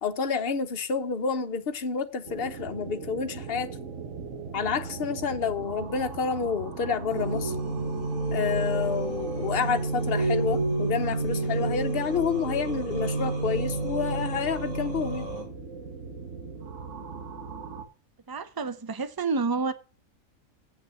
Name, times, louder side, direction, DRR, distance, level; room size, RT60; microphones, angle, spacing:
voice 1, 0.0-3.7 4.5-7.5 8.3-15.3, left 6 dB, 50° left, 1.1 m, -29 dB
sound 1, 2.3-17.8, right 5 dB, 60° right, 1.5 m, -40 dB
sound 2, 7.1-15.4, right 2 dB, 85° right, 3.1 m, -30 dB
voice 2, 18.3-19.7, right 4 dB, 25° right, 0.6 m, -29 dB
8.2 x 6.5 x 7.0 m
omnidirectional pair, 1.4 m